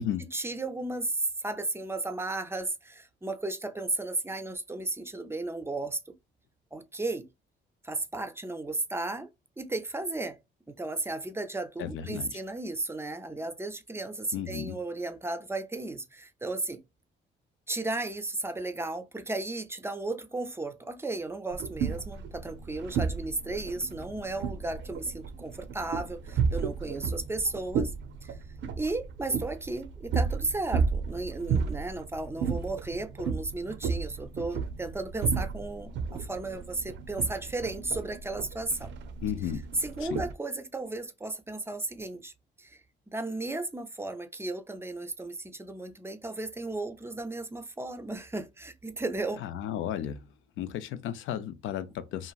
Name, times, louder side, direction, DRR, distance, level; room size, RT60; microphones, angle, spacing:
voice 1, 0.3-6.1 6.7-7.3 7.8-9.3 9.6-10.4 10.7-16.8 17.7-27.9 28.2-28.4 28.8-38.9 39.4-39.5 39.8-42.3 42.6-42.8 43.1-49.4, right 2 dB, 10° right, 0.5 m, -34 dB
voice 2, 11.8-12.3 14.3-14.8 39.2-39.6 40.0-40.2 49.4-50.3 50.6-52.3, left 9 dB, 80° left, 0.5 m, -34 dB
sound 1, 21.5-40.3, right 5 dB, 65° right, 0.5 m, -33 dB
2.9 x 2.5 x 2.3 m
cardioid pair, 90°, 20 cm